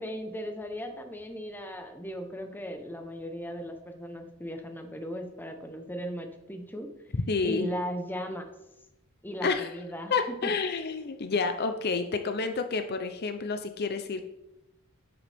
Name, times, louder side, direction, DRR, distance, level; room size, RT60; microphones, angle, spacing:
voice 1, 0.0-6.9 7.4-8.5 9.2-10.1 10.4-10.5, equal, 10° left, 5 dB, 1.0 m, -37 dB
voice 2, 7.3-7.7 9.4-9.7 10.1-14.2, left 4 dB, 50° left, 8 dB, 0.6 m, -29 dB
11.0 x 7.9 x 3.5 m, 0.92 s
head